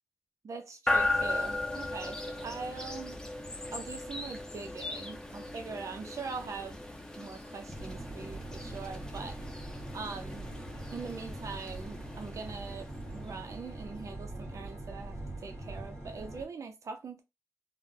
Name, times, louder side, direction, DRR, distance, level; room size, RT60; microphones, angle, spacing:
voice 1, 0.4-3.2 3.7-6.8 7.2-9.4 9.9-10.5 10.9-17.2, right 4 dB, 65° right, 0.5 m, -42 dB
sound 1, 0.9-13.9, left 2 dB, 10° left, 0.7 m, -37 dB
sound 2, 7.7-16.4, right 2 dB, 50° right, 1.4 m, -43 dB
3.7 x 2.0 x 2.7 m
wide cardioid pair, 80°, 6 cm